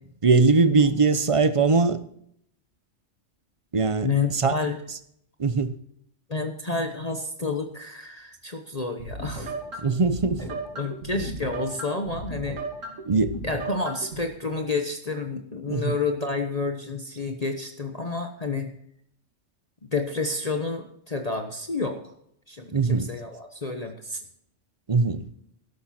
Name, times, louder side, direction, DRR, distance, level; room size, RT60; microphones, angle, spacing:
voice 1, 0.2-2.0 3.7-4.6 5.4-5.7 9.8-10.4 13.1-13.4 15.7-16.0 22.7-23.1 24.9-25.2, right 4 dB, 30° right, 0.8 m, -21 dB
voice 2, 4.0-4.8 6.3-9.5 10.7-12.6 13.4-18.7 19.8-22.1 22.5-24.2, left 3 dB, 35° left, 1.1 m, -29 dB
sound 1, 9.0-14.2, right 2 dB, 85° right, 3.0 m, -35 dB
12.5 x 12.0 x 4.3 m
omnidirectional pair, 1.3 m